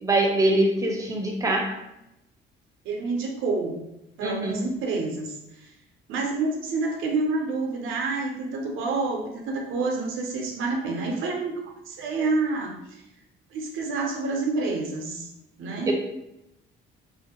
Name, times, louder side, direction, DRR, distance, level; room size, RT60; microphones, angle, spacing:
voice 1, 0.0-1.8 4.2-4.6 15.9-16.0, right 1 dB, 15° right, 1 dB, 0.6 m, -23 dB
voice 2, 2.8-3.8 4.2-5.4 6.1-12.8 13.5-15.3 15.6-15.9, right 3 dB, 85° right, 1 dB, 0.6 m, -28 dB
2.5 x 2.2 x 2.8 m, 0.87 s
cardioid pair, 90°, 20 cm